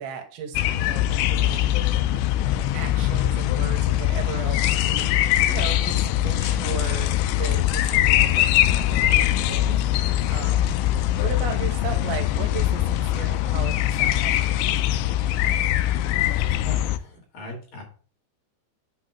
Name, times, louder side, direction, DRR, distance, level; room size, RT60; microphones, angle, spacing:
voice 1, 0.0-1.8 2.7-10.8 11.2-14.8, right 6 dB, 85° right, 4 dB, 3.5 m, -36 dB
sound 1, 0.5-17.0, left 13 dB, 85° left, 2.8 m, -22 dB
voice 2, 16.6-17.8, left 3 dB, 55° left, -1 dB, 3.3 m, -39 dB
8.5 x 3.0 x 6.0 m, 0.40 s
omnidirectional pair, 5.2 m